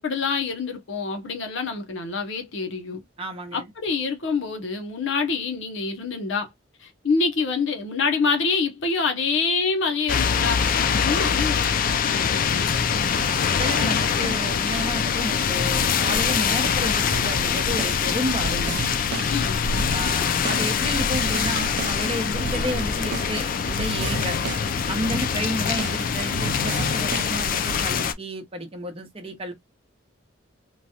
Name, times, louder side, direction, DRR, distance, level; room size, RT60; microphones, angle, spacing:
voice 1, 0.0-3.0 3.5-6.5 6.8-12.7 19.3-19.6, left 4 dB, 65° left, 0.7 m, -26 dB
voice 2, 3.2-3.7 13.1-18.8 19.9-24.4 24.9-29.5, equal, 30° right, 0.8 m, -31 dB
sound 1, 10.1-28.1, left 7 dB, 45° left, 0.4 m, -24 dB
sound 2, 17.1-27.8, right 4 dB, 55° right, 0.4 m, -35 dB
3.1 x 2.3 x 2.7 m
head